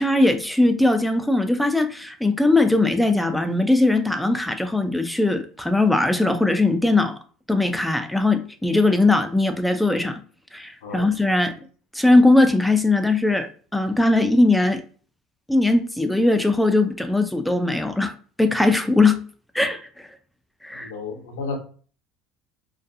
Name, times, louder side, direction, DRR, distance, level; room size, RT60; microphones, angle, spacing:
voice 1, 0.0-7.2 7.5-10.2 10.5-11.5 11.9-14.8 15.5-18.1 18.4-19.2 19.5-20.1 20.6-20.9, left 2 dB, 5° left, 8 dB, 0.3 m, -20 dB
voice 2, 10.8-11.1 20.8-21.6, left 4 dB, 85° left, 4 dB, 0.6 m, -32 dB
2.4 x 2.2 x 2.6 m, 0.42 s
supercardioid pair, 90°, 0 cm